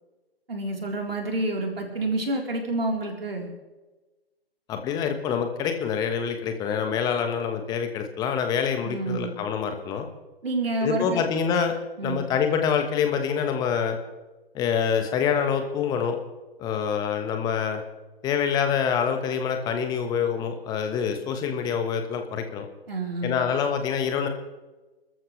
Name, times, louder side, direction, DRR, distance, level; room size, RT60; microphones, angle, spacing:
voice 1, 0.5-3.5 8.8-9.3 10.4-11.3 12.0-12.2 22.9-23.5, right 2 dB, 70° right, 0 dB, 4.0 m, -28 dB
voice 2, 4.7-10.1 10.8-11.7 12.0-14.0 14.5-16.2 16.6-17.8 18.2-22.7 23.2-24.3, left 7 dB, 15° left, 6 dB, 1.4 m, -26 dB
30.0 x 14.0 x 3.3 m, 1.1 s
figure-of-eight pair, 135°, 31 cm